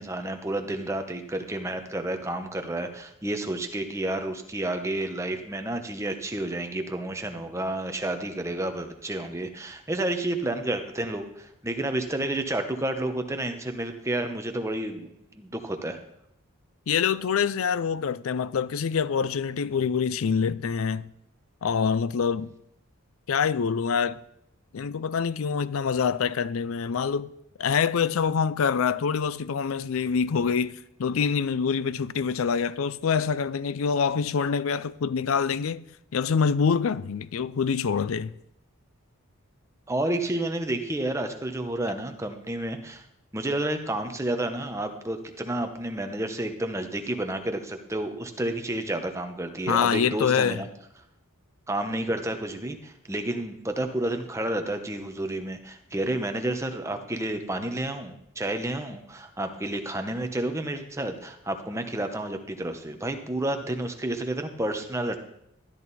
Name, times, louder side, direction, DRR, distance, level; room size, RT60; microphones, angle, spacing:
voice 1, 0.0-16.0 39.9-43.0 43.3-50.7 51.7-65.2, right 1 dB, 15° right, 1.0 m, -30 dB
voice 2, 16.9-21.1 21.6-22.5 23.3-24.2 24.7-27.3 27.6-35.8 36.1-38.3 49.7-50.6, left 6 dB, 75° left, 0.4 m, -25 dB
13.0 x 10.5 x 4.2 m
head